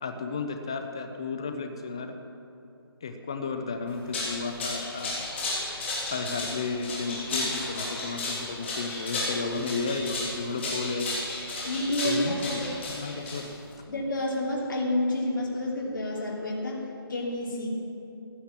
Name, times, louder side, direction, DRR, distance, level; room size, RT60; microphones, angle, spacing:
voice 1, 0.0-2.2 3.0-5.2 6.1-11.1 12.0-13.5, left 4 dB, 10° left, 7 dB, 0.4 m, -33 dB
sound 1, 3.9-13.7, left 2 dB, 30° left, 3.4 m, -33 dB
voice 2, 11.6-12.6 13.9-16.8 17.1-17.7, left 1 dB, 55° left, -2 dB, 3.1 m, -29 dB
15.5 x 9.9 x 7.4 m, 2.8 s
hypercardioid pair, 175°, 13 cm